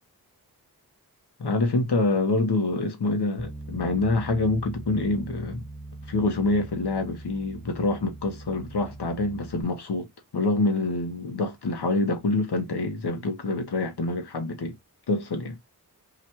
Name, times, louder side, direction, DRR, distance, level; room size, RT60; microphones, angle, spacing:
voice 1, 1.4-5.6 6.1-10.1 10.3-14.7 15.1-15.6, left 2 dB, 90° left, 1.1 m, -26 dB
Bass guitar, 3.4-9.6, right 2 dB, ahead, 1.5 m, -41 dB
3.0 x 2.5 x 4.3 m
wide cardioid pair, 55°, 38 cm